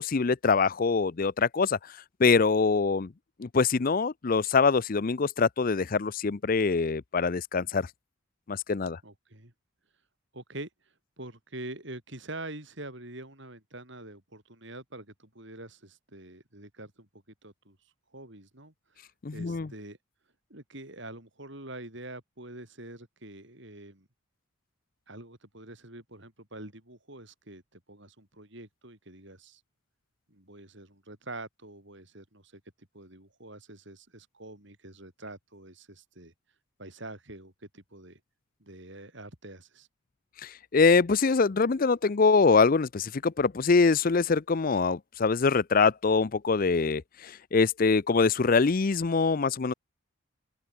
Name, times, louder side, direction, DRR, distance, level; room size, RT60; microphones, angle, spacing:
voice 1, 0.0-1.8 2.2-3.1 3.4-7.9 8.5-9.0 19.2-19.7 40.4-49.7, left 4 dB, 40° left, 0.5 m, -24 dB
voice 2, 9.0-9.5 10.3-17.1 17.4-19.1 19.3-20.0 20.5-24.1 25.1-29.6 30.3-32.6 32.9-36.3 36.8-38.2 38.6-39.9, right 2 dB, 55° right, 4.8 m, -45 dB
open air
head